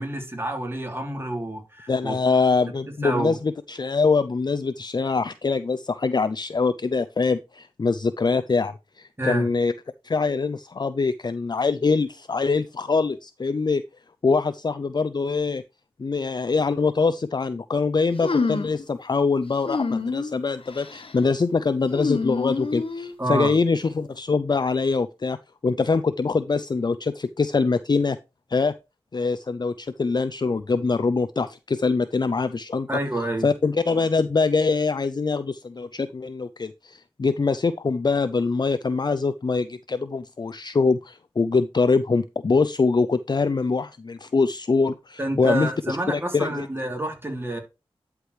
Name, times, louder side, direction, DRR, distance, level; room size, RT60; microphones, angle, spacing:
voice 1, 0.0-2.1 3.0-3.4 9.2-9.5 23.2-23.5 32.9-33.5 45.2-47.6, right 1 dB, 25° right, 3.2 m, -28 dB
voice 2, 1.9-9.7 10.0-13.8 14.2-15.6 16.0-25.4 25.6-28.2 28.5-28.7 29.1-32.9 33.4-46.7, left 4 dB, 45° left, 0.5 m, -24 dB
sound 1, 18.2-18.8 19.6-20.3 20.7-21.1 21.9-23.1, left 4 dB, 60° left, 1.3 m, -27 dB
11.0 x 4.8 x 3.3 m
cardioid pair, 45°, 10 cm